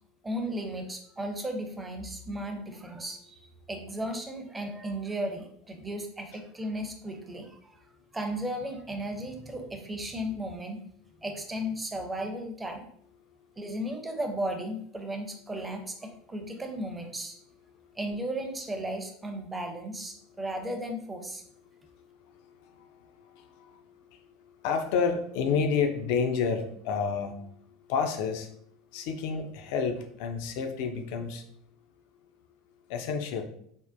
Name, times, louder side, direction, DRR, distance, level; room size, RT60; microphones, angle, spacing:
voice 1, 0.2-7.8 8.1-10.8 11.2-12.9 13.6-17.3 18.0-21.4, right 1 dB, 15° right, 4 dB, 0.6 m, -35 dB
voice 2, 22.3-23.8 24.1-27.3 27.9-28.5 28.9-31.4 32.9-33.4, left 6 dB, 60° left, 6 dB, 0.4 m, -30 dB
3.5 x 2.1 x 2.5 m, 0.68 s
figure-of-eight pair, 75°, 0 cm